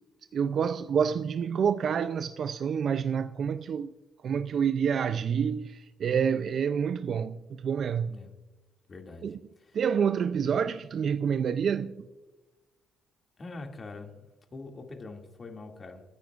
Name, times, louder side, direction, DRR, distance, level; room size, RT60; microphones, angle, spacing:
voice 1, 0.3-3.9 4.2-8.2 9.2-9.4 9.7-12.0, right 7 dB, 60° right, 0.4 m, -28 dB
voice 2, 8.9-9.8 13.4-16.0, left 3 dB, 35° left, 2.3 m, -44 dB
28.5 x 10.0 x 2.5 m
cardioid pair, 90°, 0 cm